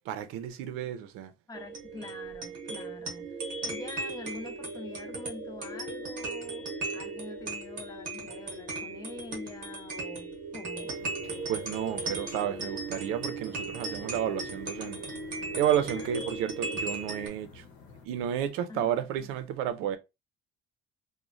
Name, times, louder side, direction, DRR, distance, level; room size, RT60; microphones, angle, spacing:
voice 1, 0.1-1.3 11.5-15.0 15.6-17.6 18.0-20.0, right 10 dB, 85° right, 0.5 m, -31 dB
voice 2, 1.5-11.0 16.0-16.1 18.7-19.4, left 2 dB, 20° left, 0.4 m, -45 dB
sound 1, 1.5-17.3, right 3 dB, 40° right, 0.9 m, -37 dB
sound 2, 10.9-18.1, left 4 dB, 70° left, 0.9 m, -52 dB
3.0 x 2.1 x 2.5 m
cardioid pair, 145°, 21 cm